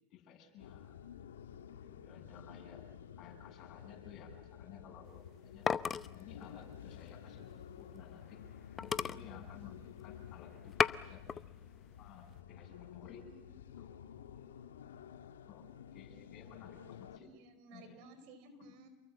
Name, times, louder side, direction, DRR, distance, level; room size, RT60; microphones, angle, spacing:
voice 1, 0.1-1.0 1.7-2.8 3.2-5.7 6.1-8.5 8.8-14.0 15.5-17.3 17.7-18.0, left 7 dB, 45° left, 2 dB, 7.8 m, -56 dB
sound 1, 0.6-17.2, left 9 dB, 85° left, 1.6 m, -52 dB
voice 2, 2.2-2.5 13.0-13.4 17.2-18.9, right 2 dB, 60° right, 9 dB, 4.8 m, -57 dB
sound 2, 5.1-8.1 8.5-8.6 8.8-10.2 10.5-11.4 11.9-12.4, left 6 dB, 25° left, 0.8 m, -36 dB
28.5 x 22.5 x 7.3 m, 1.1 s
hypercardioid pair, 100°, 0 cm